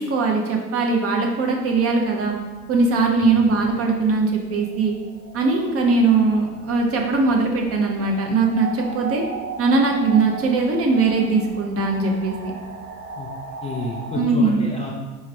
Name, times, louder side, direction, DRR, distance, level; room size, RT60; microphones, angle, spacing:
voice 1, 0.0-2.3 2.7-4.9 5.3-9.2 9.6-12.5 14.1-14.7, right 3 dB, 30° right, 1 dB, 0.8 m, -20 dB
sound 1, 1.4-14.2, right 4 dB, 85° right, 0.8 m, -38 dB
voice 2, 13.6-14.9, left 3 dB, 15° left, -3 dB, 0.5 m, -29 dB
4.6 x 3.2 x 3.5 m, 1.2 s
hypercardioid pair, 85°, 46 cm